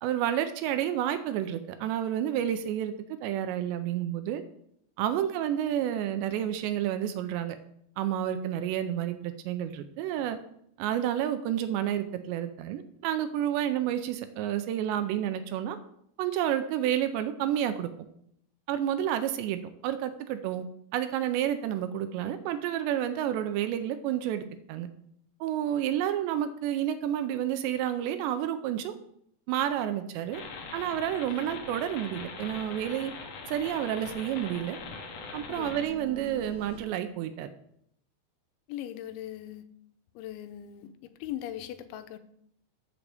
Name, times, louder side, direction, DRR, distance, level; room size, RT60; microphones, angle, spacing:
voice 1, 0.0-2.9 3.2-4.4 5.0-7.6 8.0-10.4 10.8-15.8 16.2-17.9 18.7-20.6 20.9-24.9 25.4-28.9 29.5-30.4 30.7-33.1 33.5-34.8 35.3-37.5, right 11 dB, 80° right, 2.7 m, -30 dB
sound 1, 30.3-35.8, left 4 dB, 65° left, 2.1 m, -42 dB
sound 2, 30.4-30.5 30.8-30.9 31.2-31.3 31.6-31.7 32.0-33.3 33.6-36.8, right 6 dB, 60° right, 2.5 m, -49 dB
voice 2, 35.5-35.9 38.7-39.6 40.2-42.2, left 12 dB, 90° left, 3.0 m, -40 dB
13.0 x 7.1 x 3.5 m
omnidirectional pair, 5.3 m